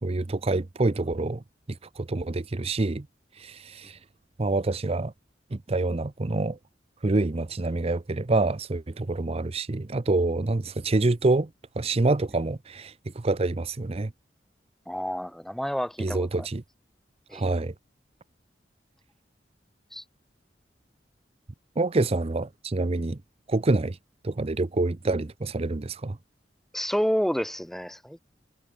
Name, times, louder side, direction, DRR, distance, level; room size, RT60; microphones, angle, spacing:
voice 1, 0.0-3.1 3.4-4.0 4.4-5.1 5.5-6.6 7.0-11.5 11.8-14.1 16.0-16.6 17.3-17.7 21.8-23.2 23.5-24.0 24.2-26.2, right 2 dB, 35° right, 0.6 m, -27 dB
voice 2, 14.9-16.5 17.3-17.4 19.9-20.0 26.7-28.2, equal, ahead, 0.9 m, -29 dB
head